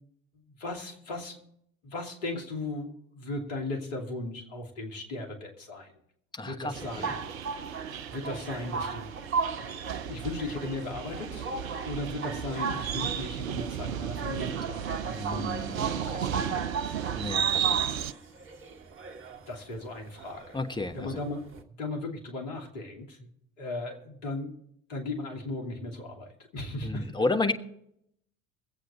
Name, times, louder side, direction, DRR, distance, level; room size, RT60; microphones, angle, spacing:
voice 1, 0.5-1.4 1.8-5.9 6.4-7.3 8.1-9.1 9.6-17.0 19.5-20.7 20.9-21.5 21.8-23.3 23.6-24.5 24.9-27.1, left 2 dB, 65° left, 2 dB, 2.9 m, -37 dB
voice 2, 6.3-7.2 15.1-16.6 17.2-18.0 20.5-21.2 26.8-27.5, left 2 dB, 10° left, 6 dB, 1.3 m, -33 dB
sound 1, 6.7-18.1, right 9 dB, 80° right, 0.5 m, -34 dB
sound 2, 6.8-21.6, right 5 dB, 30° right, 1.6 m, -36 dB
22.5 x 8.3 x 4.4 m, 0.71 s
figure-of-eight pair, 60°, 40 cm